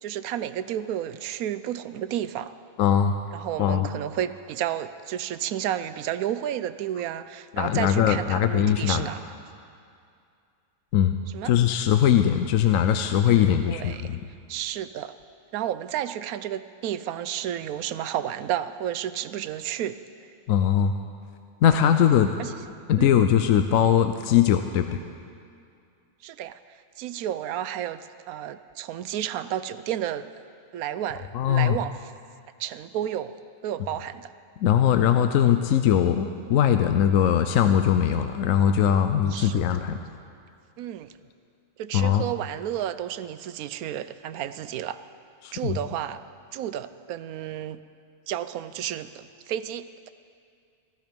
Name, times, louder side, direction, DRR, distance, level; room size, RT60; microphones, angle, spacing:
voice 1, 0.0-2.5 3.3-9.2 11.3-11.5 13.7-14.0 14.5-15.1 15.5-20.3 22.4-22.5 23.0-23.1 26.2-30.3 30.7-32.1 32.6-33.3 33.6-34.3 39.3-39.6 40.8-41.1 41.8-45.0 45.5-46.2 46.5-47.8 48.3-50.1, right 11 dB, 90° right, 13 dB, 1.1 m, -32 dB
voice 2, 2.8-3.2 3.6-3.9 7.6-9.1 10.9-11.1 11.4-14.2 20.5-20.9 21.6-22.3 22.9-25.0 31.3-31.8 34.6-40.0 41.9-42.2 45.4-45.8, left 9 dB, 75° left, 8 dB, 1.0 m, -21 dB
15.5 x 14.5 x 5.2 m, 2.4 s
omnidirectional pair, 1.5 m